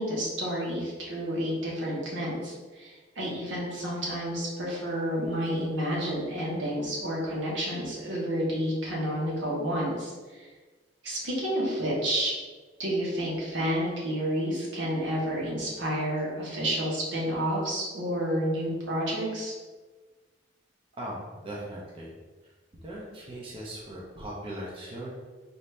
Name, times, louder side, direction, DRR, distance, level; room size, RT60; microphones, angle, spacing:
voice 1, 0.0-10.5 11.0-12.3 12.8-19.5, equal, 80° right, -5 dB, 1.3 m, -30 dB
voice 2, 21.0-22.1 22.8-25.1, right 1 dB, 30° right, -4 dB, 0.6 m, -39 dB
4.1 x 2.6 x 3.3 m, 1.3 s
head